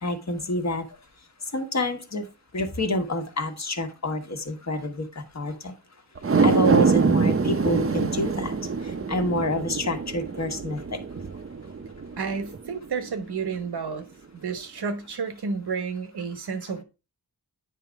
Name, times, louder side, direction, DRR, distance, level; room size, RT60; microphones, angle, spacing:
voice 1, 0.0-0.9 1.5-2.3 2.5-5.7 6.4-11.0, left 1 dB, 45° left, 1.3 m, -28 dB
sound 1, 6.2-12.7 13.1-13.2, right 4 dB, 35° right, 0.7 m, -25 dB
voice 2, 12.2-14.1 14.3-16.8, right 5 dB, 80° right, 1.2 m, -31 dB
9.5 x 5.1 x 3.4 m
wide cardioid pair, 110°, 38 cm